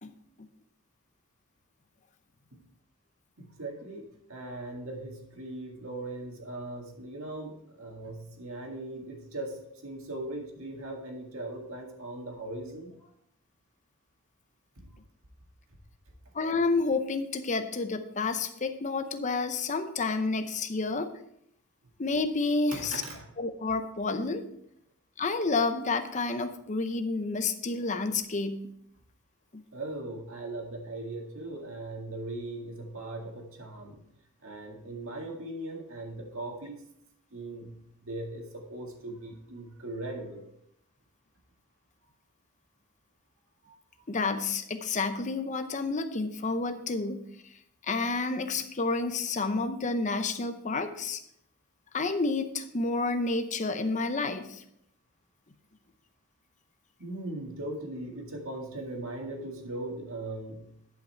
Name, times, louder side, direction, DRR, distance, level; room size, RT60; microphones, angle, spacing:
voice 1, 3.4-13.1 14.8-14.9 22.7-23.3 29.7-34.0 34.4-36.8 37.3-40.4 43.6-43.7 57.0-60.7, right 2 dB, 65° right, 1 dB, 2.0 m, -39 dB
voice 2, 16.3-21.1 22.0-23.0 23.4-24.5 25.2-28.7 44.1-47.2 47.9-51.2 51.9-54.6, left 3 dB, 35° left, 9 dB, 0.7 m, -30 dB
10.5 x 5.8 x 4.5 m, 0.73 s
head